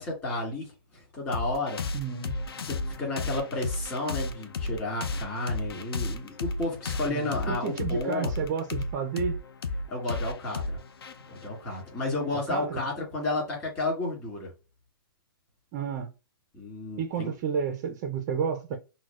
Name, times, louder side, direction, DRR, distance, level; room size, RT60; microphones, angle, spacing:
voice 1, 0.0-1.8 2.6-8.3 9.9-10.8 11.3-14.5 16.5-17.3, left 2 dB, 20° left, 1.9 m, -32 dB
sound 1, 1.3-12.4, left 3 dB, 80° left, 0.5 m, -34 dB
voice 2, 1.9-2.4 7.1-9.4 12.3-12.8 15.7-16.1 17.0-18.8, right 7 dB, 20° right, 0.4 m, -31 dB
6.0 x 2.1 x 2.3 m
hypercardioid pair, 160°, 13 cm